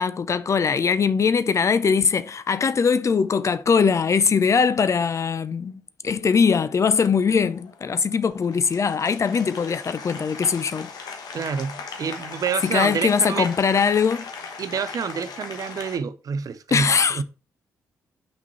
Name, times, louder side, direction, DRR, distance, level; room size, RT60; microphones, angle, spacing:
voice 1, 0.0-5.7 6.0-10.9 12.6-14.2 16.7-17.2, left 6 dB, 40° left, 0.6 m, -21 dB
Applause, 6.8-16.0, left 5 dB, 60° left, 1.1 m, -38 dB
voice 2, 11.3-13.5 14.6-16.9 17.1-17.2, right 6 dB, 50° right, 0.7 m, -28 dB
5.9 x 4.3 x 4.3 m
hypercardioid pair, 40°, 8 cm